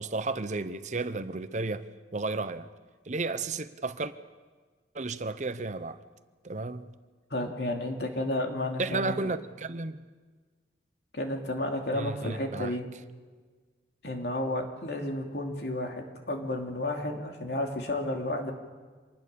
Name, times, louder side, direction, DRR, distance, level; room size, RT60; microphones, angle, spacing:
voice 1, 0.0-1.9 2.1-2.7 3.1-4.1 4.9-6.0 6.4-6.9 8.8-10.0 11.9-12.7, right 3 dB, 45° right, 0.8 m, -33 dB
voice 2, 7.3-9.3 11.1-12.8 14.0-18.5, left 1 dB, 65° left, 3.0 m, -32 dB
25.5 x 19.5 x 7.0 m
head